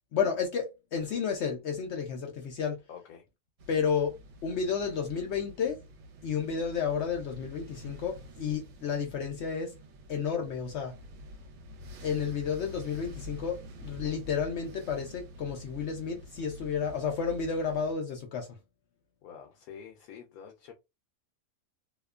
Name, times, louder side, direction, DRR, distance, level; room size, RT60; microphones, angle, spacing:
voice 1, 0.1-2.8 3.7-4.2 4.4-5.8 6.2-9.7 10.1-10.9 12.0-18.5, left 6 dB, 65° left, 0.7 m, -31 dB
voice 2, 2.9-3.2 19.2-20.7, left 7 dB, 85° left, 1.1 m, -47 dB
sound 1, 3.6-17.9, left 1 dB, 80° right, 1.1 m, -48 dB
2.8 x 2.1 x 2.3 m
omnidirectional pair, 1.5 m